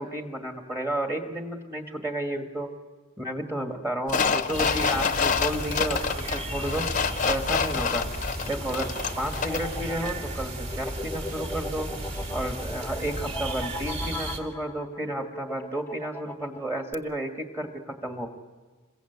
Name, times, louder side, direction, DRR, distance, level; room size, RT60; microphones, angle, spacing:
voice 1, 0.0-2.7 3.2-6.9 7.3-8.1 8.5-11.9 12.3-18.3, right 1 dB, 10° right, 3 dB, 1.7 m, -32 dB
sound 1, 4.1-9.7 10.1-10.2, left 5 dB, 35° left, 0.8 m, -27 dB
sound 2, 4.5-14.4, right 1 dB, 30° right, 2.5 m, -34 dB
sound 3, 8.5-16.9, left 2 dB, 10° left, 0.9 m, -39 dB
27.0 x 22.5 x 8.1 m, 1.4 s
head